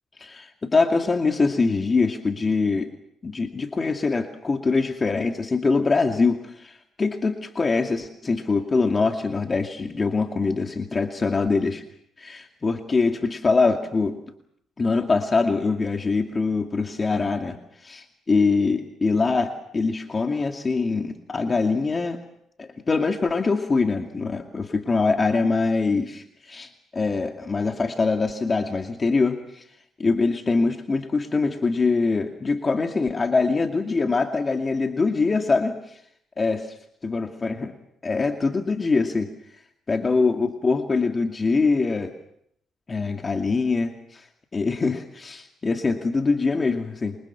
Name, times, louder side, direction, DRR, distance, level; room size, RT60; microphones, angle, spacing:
voice 1, 0.2-2.9 3.2-11.8 12.2-14.2 14.8-22.2 22.6-29.6 30.0-36.0 36.4-36.6 37.0-37.7 38.0-39.3 39.9-42.1 42.9-44.2 44.5-47.2, left 4 dB, 30° left, 4 dB, 2.4 m, -23 dB
27.0 x 26.0 x 6.0 m, 0.70 s
cardioid pair, 90°, 0 cm